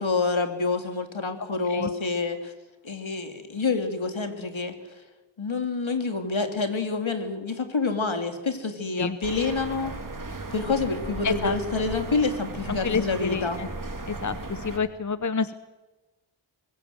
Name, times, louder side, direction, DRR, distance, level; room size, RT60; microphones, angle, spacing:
voice 1, 0.0-2.5 2.8-4.7 5.4-9.9 10.5-13.6, left 4 dB, 70° left, 6 dB, 2.8 m, -27 dB
sound 1, 9.2-14.8, right 3 dB, 40° right, 2.4 m, -36 dB
voice 2, 11.2-11.5 12.7-13.7 14.1-15.5, left 5 dB, 35° left, 13 dB, 0.8 m, -28 dB
24.0 x 21.0 x 7.9 m, 1.1 s
wide cardioid pair, 70°, 49 cm